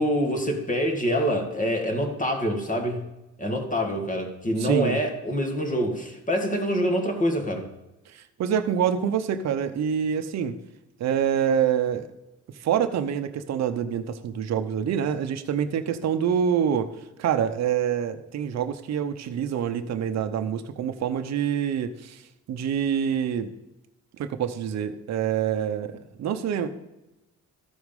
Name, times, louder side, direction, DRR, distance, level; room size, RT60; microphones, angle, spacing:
voice 1, 0.0-3.0 3.4-7.7, equal, 25° left, 3 dB, 1.8 m, -26 dB
voice 2, 4.6-5.0 8.1-10.6 11.0-12.1 12.6-16.9 17.2-22.2 22.5-23.5 24.2-26.7, right 8 dB, 60° right, 7 dB, 0.8 m, -26 dB
13.5 x 4.8 x 5.3 m, 0.98 s
cardioid pair, 90°, 30 cm